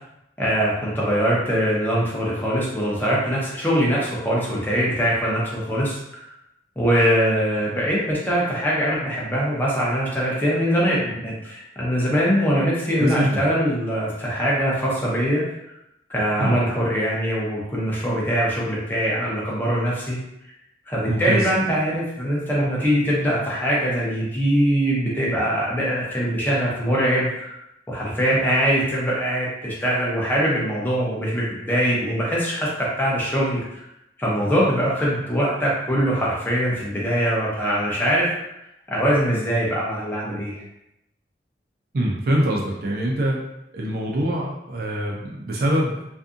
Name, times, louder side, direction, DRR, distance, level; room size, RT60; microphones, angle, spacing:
voice 1, 0.4-6.0 6.8-15.4 16.1-20.2 20.9-27.6 27.9-33.6 34.2-38.3 38.9-40.6, equal, 10° left, -6 dB, 0.6 m, -22 dB
voice 2, 13.0-13.4 16.4-16.6 21.1-21.5 41.9-43.4 43.7-46.0, right 1 dB, 55° right, -2 dB, 0.4 m, -23 dB
2.6 x 2.5 x 2.4 m, 0.85 s
head